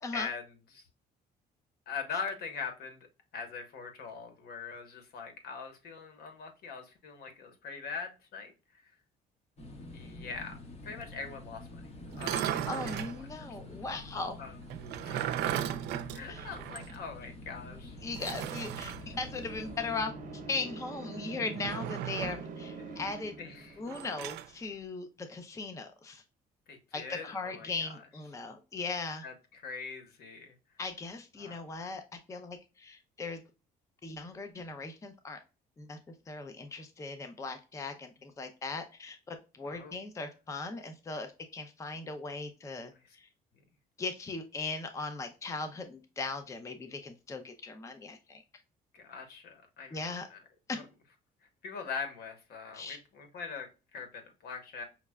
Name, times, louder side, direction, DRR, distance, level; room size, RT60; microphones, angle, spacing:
voice 1, 0.1-0.4 0.7-0.8 1.9-3.1 3.3-8.5 8.8-8.9 9.9-11.9 12.1-13.1 13.4-13.5 14.4-14.6 15.0-15.5 16.1-18.0 22.8-23.0 23.4-23.8 26.7-28.0 29.2-30.5 31.4-31.6 39.7-40.0 43.0-43.2 48.9-50.4 50.7-50.8 51.6-54.8, left 5 dB, 70° left, 6 dB, 1.1 m, -42 dB
sound 1, 9.6-20.0, left 2 dB, 40° left, 1.0 m, -48 dB
sound 2, 12.1-13.2 14.7-17.0 17.3-17.4 18.1-19.0 21.5-22.5 23.9-24.5, right 11 dB, 80° right, 0.4 m, -36 dB
voice 2, 12.7-14.4 16.3-16.5 18.0-23.4 23.8-26.2 26.9-29.2 30.8-32.0 32.3-33.4 34.0-35.4 35.8-36.0 36.3-43.3 44.0-48.4 49.9-50.3 50.7-50.8 52.7-53.0, left 3 dB, 20° left, 6 dB, 0.5 m, -38 dB
sound 3, 17.3-24.2, right 4 dB, 55° right, 0.9 m, -45 dB
5.7 x 2.1 x 2.2 m, 0.30 s
cardioid pair, 110°, 17 cm